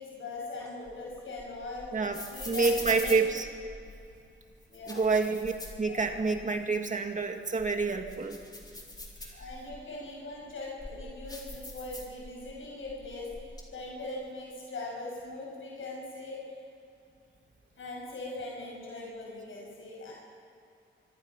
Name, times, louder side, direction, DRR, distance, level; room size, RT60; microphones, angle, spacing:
voice 1, 0.0-1.9 2.3-3.2 4.7-5.1 5.9-6.0 9.3-13.3 13.7-16.4 17.8-20.1, left 2 dB, 80° left, -2 dB, 6.0 m, -41 dB
sound 1, 0.6-4.0 4.6-6.4 6.8-6.9 7.4-9.8 10.4-12.5 12.8-13.6, left 1 dB, 20° left, 3.9 m, -43 dB
voice 2, 2.5-3.5 4.9-8.4, right 4 dB, 40° right, 4 dB, 2.0 m, -28 dB
25.5 x 25.0 x 5.9 m, 2.5 s
wide cardioid pair, 140°, 20 cm